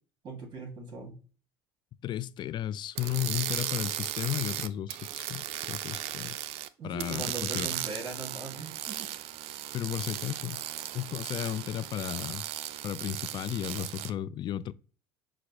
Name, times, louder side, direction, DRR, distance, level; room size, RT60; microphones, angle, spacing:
voice 1, 0.2-1.2 6.8-9.1, right 4 dB, 40° right, 2.3 m, -40 dB
voice 2, 2.0-6.4 6.8-7.7 9.7-10.6 10.9-12.4 12.8-14.7, left 11 dB, 40° left, 0.3 m, -34 dB
sound 1, 2.9-6.7 7.0-14.1, right 13 dB, 60° right, 0.4 m, -36 dB
6.0 x 2.5 x 3.0 m
supercardioid pair, 90°, 12 cm